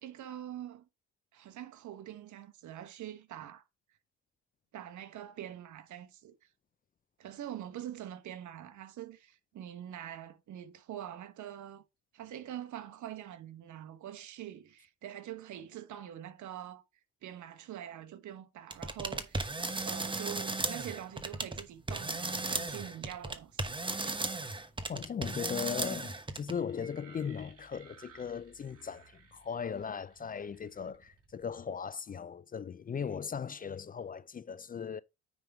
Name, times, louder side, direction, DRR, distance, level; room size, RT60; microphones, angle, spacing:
voice 1, 0.0-0.9 1.3-3.6 4.7-6.3 7.2-11.8 12.1-16.8 17.2-19.5 19.8-23.7 24.0-24.3, right 11 dB, 75° right, 1.1 m, -44 dB
sound 1, 18.7-21.6 21.9-26.5, right 2 dB, 15° right, 1.0 m, -35 dB
voice 2, 24.9-35.0, left 7 dB, 30° left, 0.4 m, -38 dB
sound 2, 26.5-31.7, right 5 dB, 50° right, 4.0 m, -59 dB
9.5 x 3.5 x 4.8 m
cardioid pair, 90°, 30 cm